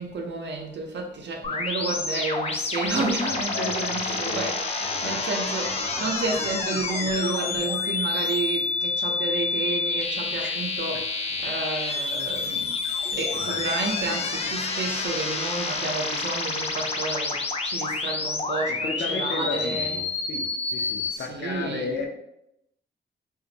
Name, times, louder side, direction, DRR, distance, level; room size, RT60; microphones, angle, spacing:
voice 1, 0.0-12.7 13.1-20.0 21.1-22.0, right 3 dB, 80° right, 0.6 m, -31 dB
sound 1, 1.4-21.2, left 4 dB, 35° left, 0.4 m, -28 dB
voice 2, 3.2-4.5 4.8-5.2 10.3-10.5 10.9-11.0 13.4-13.6 18.7-22.1, left 4 dB, 85° left, 0.6 m, -34 dB
2.5 x 2.5 x 3.9 m
wide cardioid pair, 165°, 18 cm